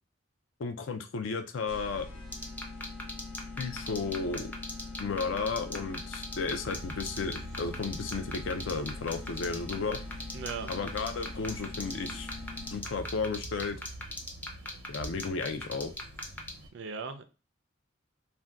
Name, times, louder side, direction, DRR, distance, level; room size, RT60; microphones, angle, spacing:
voice 1, 0.6-2.1 3.6-4.5 5.0-10.0 10.7-12.3 12.7-13.8 14.9-15.9, left 4 dB, 70° left, 7 dB, 0.4 m, -33 dB
sound 1, 1.7-13.1, left 3 dB, 45° left, 1.0 m, -43 dB
sound 2, 2.3-16.5, left 1 dB, 10° left, 0.4 m, -37 dB
sound 3, 6.6-16.7, right 2 dB, 90° right, 0.7 m, -47 dB
voice 2, 10.3-10.7 16.7-17.2, right 5 dB, 60° right, 8 dB, 0.4 m, -38 dB
2.5 x 2.2 x 3.4 m, 0.32 s
head